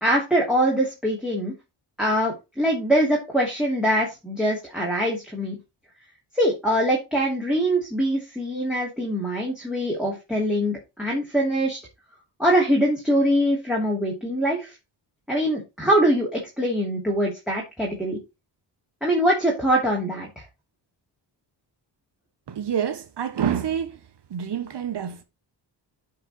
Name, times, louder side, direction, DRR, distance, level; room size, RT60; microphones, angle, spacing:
voice 1, 0.0-1.5 2.0-5.6 6.3-11.8 12.4-14.7 15.3-18.2 19.0-20.3, equal, ahead, 2.6 m, -23 dB
voice 2, 22.5-24.0 24.3-25.2, right 8 dB, 60° right, 1.1 m, -27 dB
8.7 x 4.9 x 4.3 m
cardioid pair, 85°, 45 cm